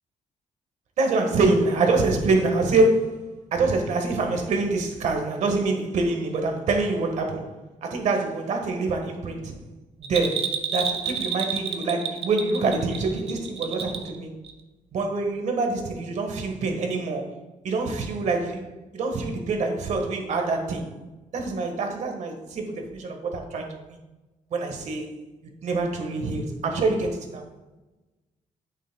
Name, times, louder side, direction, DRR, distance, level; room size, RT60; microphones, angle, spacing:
voice 1, 1.0-9.6 10.0-14.3 14.9-17.3 17.6-18.6 18.9-20.9 21.3-24.0 24.5-25.1 25.6-27.4, right 3 dB, 65° right, 1.4 m, -25 dB
Bell, 10.0-14.2 14.4-14.5, right 6 dB, 45° right, 0.8 m, -29 dB
9.2 x 8.3 x 2.2 m
cardioid pair, 140°, 13 cm